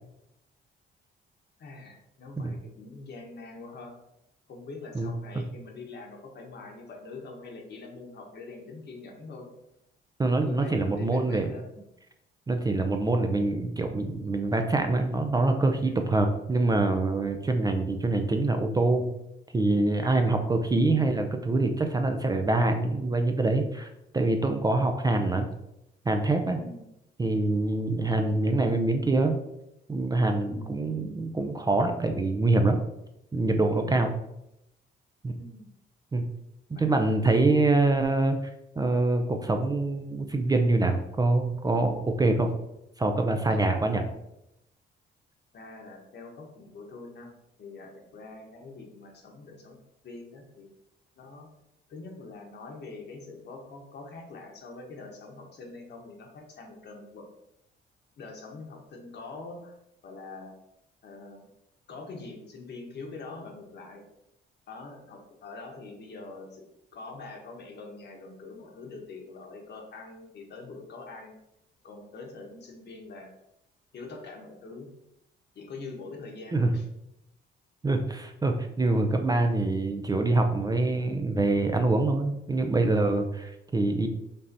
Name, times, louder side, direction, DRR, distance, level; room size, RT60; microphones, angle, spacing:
voice 1, 1.6-4.0 4.5-9.5 10.4-11.6 15.8-16.3 20.0-20.4 26.5-26.9 30.4-30.8 35.4-35.7 36.7-36.9 43.5-43.6 45.5-47.3 47.6-49.8 50.0-50.7 51.2-51.5 51.9-57.2 58.2-59.7 60.0-60.5 61.0-61.5 61.9-64.0 64.7-71.3 71.8-73.3 73.9-74.9 75.5-76.9, left 3 dB, 60° left, 1 dB, 1.1 m, -44 dB
voice 2, 10.2-11.5 12.5-19.1 19.5-23.9 24.1-25.5 26.1-26.6 27.2-29.4 29.9-32.8 33.3-34.1 35.2-35.3 36.1-36.2 36.7-38.4 38.8-42.5 43.0-44.1 76.5-76.7 77.8-84.1, right 2 dB, 20° right, 5 dB, 0.4 m, -25 dB
5.3 x 2.7 x 2.7 m, 0.83 s
cardioid pair, 90°, 20 cm